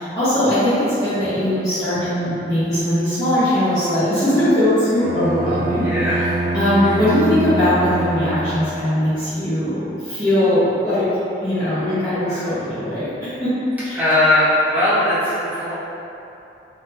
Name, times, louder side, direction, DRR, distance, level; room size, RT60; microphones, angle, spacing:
voice 1, 0.0-5.8 6.5-11.1 11.4-13.6 13.8-14.0, left 1 dB, 20° left, -16 dB, 0.8 m, -20 dB
Bowed string instrument, 5.0-9.0, right 2 dB, 45° right, 0.3 m, -24 dB
voice 2, 5.8-6.4 6.8-7.0 12.3-12.4 13.9-15.7, left 1 dB, 10° right, -13 dB, 1.0 m, -19 dB
3.6 x 2.7 x 2.7 m, 2.9 s
head